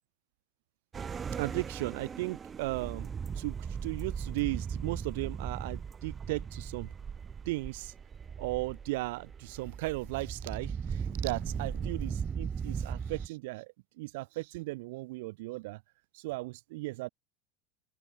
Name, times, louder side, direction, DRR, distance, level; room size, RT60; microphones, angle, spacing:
sound 1, 0.9-13.3, right 6 dB, 30° right, 2.2 m, -38 dB
voice 1, 1.4-3.1 3.4-3.6 3.8-6.9 7.5-7.9 8.4-15.8 16.1-17.1, right 22 dB, 75° right, 0.4 m, -36 dB
open air
hypercardioid pair, 95°, 0 cm